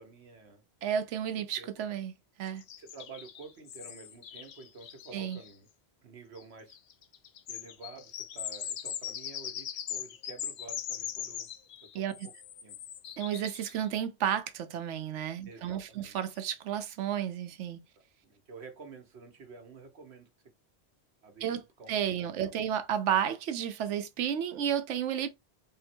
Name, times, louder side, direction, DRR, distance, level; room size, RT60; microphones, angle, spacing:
voice 1, 0.0-0.6 1.3-1.7 2.8-5.7 6.0-6.8 7.5-11.5 11.9-12.3 12.6-12.8 15.4-16.2 18.2-20.3 21.2-22.6, right 4 dB, 70° right, 1.2 m, -50 dB
voice 2, 0.8-2.1 2.4-2.6 5.1-5.4 11.9-12.1 13.2-17.8 21.4-21.6 21.9-25.3, right 9 dB, 85° right, 1.0 m, -32 dB
sound 1, 2.6-5.5 6.4-6.5 6.7-13.9 15.7-15.8 16.2-16.4, left 10 dB, 70° left, 0.8 m, -41 dB
3.8 x 2.1 x 4.3 m
omnidirectional pair, 1.2 m